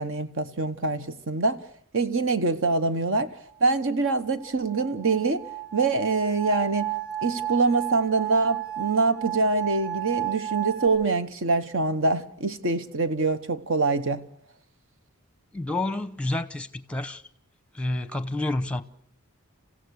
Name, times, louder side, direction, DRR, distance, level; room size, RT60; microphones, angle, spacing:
voice 1, 0.0-1.6 1.9-3.3 3.6-5.4 5.7-6.9 7.2-14.2, right 3 dB, 65° right, 1.2 m, -24 dB
sound 1, 3.7-10.9, right 13 dB, 50° right, 6.7 m, -33 dB
voice 2, 15.5-17.2 17.7-18.8, left 2 dB, 5° left, 0.9 m, -29 dB
28.0 x 16.0 x 6.5 m
head